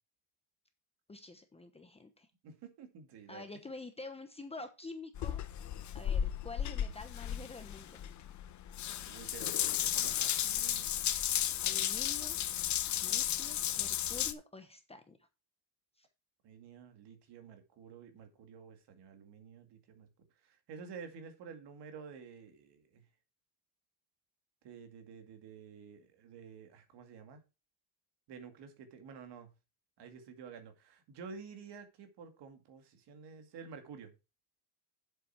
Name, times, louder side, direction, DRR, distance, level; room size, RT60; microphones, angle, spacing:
voice 1, 1.1-2.3 3.3-5.4 5.9-8.0 11.6-12.4 13.0-15.2 16.0-16.1, left 3 dB, 10° left, 0.9 m, -48 dB
voice 2, 2.4-3.5 9.0-10.9 16.4-20.1 20.4-23.0 24.6-27.4 28.3-29.5 30.0-34.1, right 6 dB, 55° right, 2.3 m, -51 dB
Water tap faucet / Bathtub (filling or washing) / Drip, 5.2-14.3, left 11 dB, 35° left, 0.8 m, -34 dB
8.2 x 7.8 x 4.5 m
cardioid pair, 160°, 48 cm